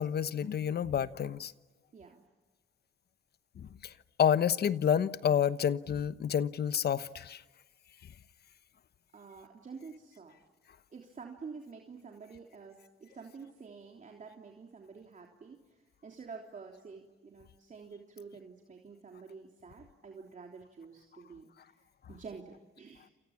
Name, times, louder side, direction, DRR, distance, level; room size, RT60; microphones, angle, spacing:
voice 1, 0.0-1.5 3.6-3.9 4.2-7.4, left 8 dB, 55° left, 1.1 m, -29 dB
voice 2, 1.9-2.2 9.1-10.3 10.9-23.1, right 5 dB, 40° right, 3.3 m, -49 dB
28.5 x 28.5 x 7.4 m
cardioid pair, 90°, 20 cm